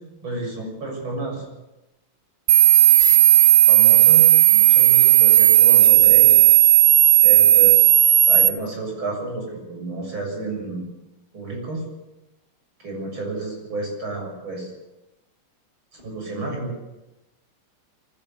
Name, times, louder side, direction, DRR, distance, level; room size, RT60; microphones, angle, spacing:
voice 1, 0.2-1.5 3.7-6.4 7.2-7.9 8.3-10.9 11.3-11.8 12.8-14.7 15.9-16.7, right 2 dB, 70° right, 0 dB, 8.0 m, -31 dB
sound 1, 2.5-8.5, right 11 dB, 85° right, 1.8 m, -13 dB
23.5 x 17.0 x 7.0 m, 0.96 s
omnidirectional pair, 2.3 m